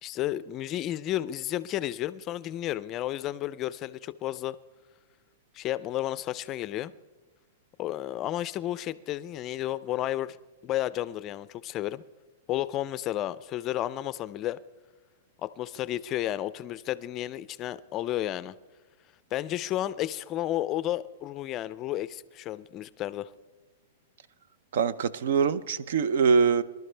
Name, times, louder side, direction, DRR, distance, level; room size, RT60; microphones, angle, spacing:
voice 1, 0.0-4.6 5.5-6.9 7.8-10.4 10.6-12.0 12.5-14.6 15.4-18.6 19.3-23.3, left 13 dB, 30° left, 0.4 m, -32 dB
voice 2, 24.7-26.6, right 6 dB, 70° right, 0.6 m, -23 dB
23.5 x 12.0 x 3.3 m
hypercardioid pair, 150°, 0 cm